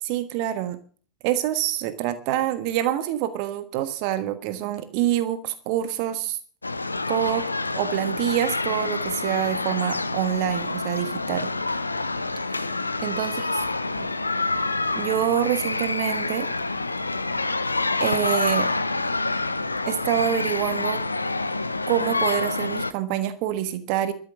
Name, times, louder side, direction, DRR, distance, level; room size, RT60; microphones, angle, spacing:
voice 1, 0.0-0.8 1.2-6.4 7.1-7.4 7.7-11.5 12.5-12.7 13.0-13.6 14.0-14.1 14.9-16.5 18.0-18.7 19.9-21.0 21.9-24.1, right 12 dB, 45° right, 11 dB, 1.4 m, -26 dB
sound 1, 6.6-22.9, left 3 dB, 80° left, 0.9 m, -27 dB
13.5 x 10.5 x 7.6 m, 0.43 s
figure-of-eight pair, 90°, 0 cm